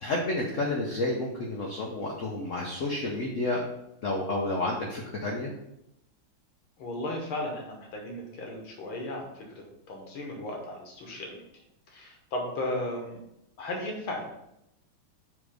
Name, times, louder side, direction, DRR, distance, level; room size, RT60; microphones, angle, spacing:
voice 1, 0.0-3.6 4.0-5.5, left 2 dB, 60° left, -1 dB, 0.8 m, -30 dB
voice 2, 6.8-13.2 13.6-14.3, left 1 dB, 80° left, 1 dB, 2.1 m, -36 dB
7.3 x 3.1 x 5.0 m, 0.84 s
omnidirectional pair, 2.3 m